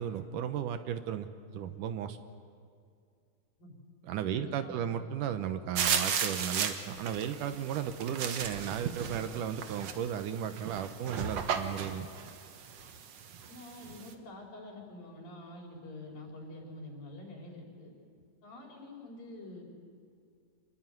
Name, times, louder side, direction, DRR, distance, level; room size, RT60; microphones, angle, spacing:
voice 1, 0.0-2.2 4.0-12.1, right 9 dB, 70° right, 10 dB, 2.3 m, -35 dB
voice 2, 4.3-4.9 13.5-17.9 18.4-19.6, left 2 dB, 75° left, 0 dB, 6.1 m, -47 dB
sound 1, 5.8-14.1, right 7 dB, 55° right, 2.1 m, -35 dB
27.0 x 21.0 x 9.2 m, 2.4 s
omnidirectional pair, 4.1 m